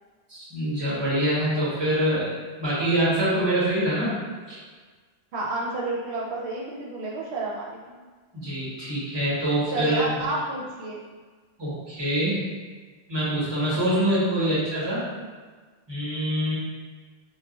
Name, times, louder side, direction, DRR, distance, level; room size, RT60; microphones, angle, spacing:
voice 1, 0.3-4.1 4.5-4.6 8.3-10.1 11.6-12.4 13.1-15.0 15.9-16.5, right 1 dB, 25° right, -9 dB, 1.1 m, -25 dB
voice 2, 5.3-8.0 9.7-11.1 15.0-15.3, right 2 dB, 85° right, -4 dB, 0.9 m, -31 dB
2.4 x 2.2 x 3.7 m, 1.4 s
omnidirectional pair, 1.1 m